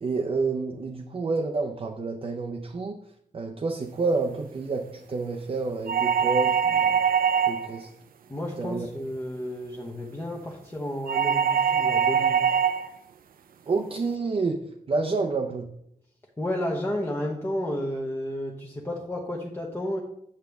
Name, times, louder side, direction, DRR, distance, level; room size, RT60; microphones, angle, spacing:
voice 1, 0.0-3.0 3.3-7.0 7.5-7.9 8.6-8.9 13.7-15.7, right 3 dB, 40° right, 1 dB, 0.6 m, -29 dB
sound 1, 5.9-7.8 11.1-12.9, right 7 dB, 80° right, 0.5 m, -23 dB
voice 2, 8.3-12.4 16.4-20.0, left 1 dB, 15° left, -2 dB, 1.0 m, -32 dB
9.1 x 6.6 x 3.5 m, 0.74 s
wide cardioid pair, 140°, 15 cm